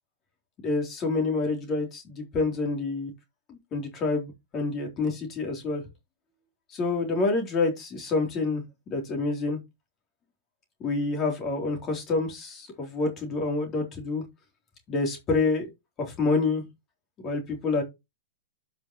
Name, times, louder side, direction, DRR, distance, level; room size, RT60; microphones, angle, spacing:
voice 1, 0.6-3.1 3.5-5.8 6.7-8.6 8.9-9.6 10.8-14.2 14.9-15.7 16.0-16.6 17.2-17.8, left 3 dB, 25° left, 3.7 m, -27 dB
11.5 x 5.7 x 3.2 m
hypercardioid pair, 135°, 0 cm